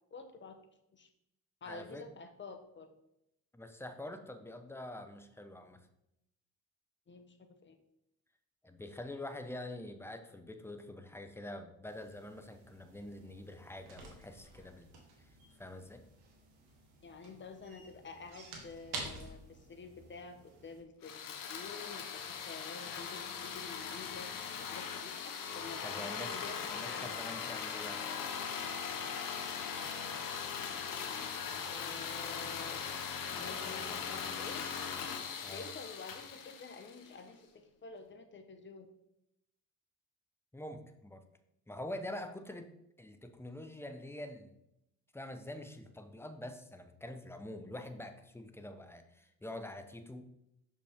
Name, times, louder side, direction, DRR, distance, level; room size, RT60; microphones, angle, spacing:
voice 1, 0.1-0.5 0.9-1.1 1.6-2.9 7.1-7.4 7.6-7.8 17.0-24.3 24.7-27.2 31.6-32.9 33.4-34.6 35.5-37.5 37.8-38.9, left 4 dB, 30° left, 7 dB, 1.1 m, -49 dB
voice 2, 1.6-2.1 3.5-5.9 8.6-14.9 15.2-15.3 15.6-16.0 25.8-26.4 26.7-28.0 35.4-35.7 40.5-41.2 41.7-44.6 45.1-50.2, left 1 dB, 5° left, 7 dB, 0.8 m, -45 dB
sound 1, 11.9-20.8, right 3 dB, 75° right, 1.7 m, -50 dB
sound 2, 21.0-37.2, left 6 dB, 60° left, 1.0 m, -40 dB
6.1 x 5.3 x 3.6 m, 0.82 s
supercardioid pair, 65°, 38 cm